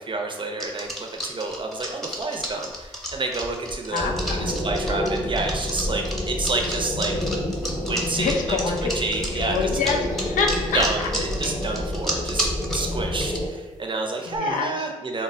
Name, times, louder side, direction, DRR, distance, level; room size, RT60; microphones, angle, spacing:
voice 1, 0.0-7.1 7.7-8.6 8.9-9.9 10.7-12.5 12.7-15.2, right 3 dB, 35° right, 2 dB, 0.5 m, -29 dB
sound 1, 0.6-13.4 14.2-14.4, equal, ahead, 0.8 m, -31 dB
voice 2, 3.9-4.5 8.2-8.9 9.4-11.1 14.3-14.8, left 4 dB, 80° left, 2 dB, 0.4 m, -26 dB
sound 2, 4.0-13.5, left 1 dB, 35° left, 0.7 m, -29 dB
2.2 x 2.0 x 3.6 m, 1.2 s
supercardioid pair, 40°, 14 cm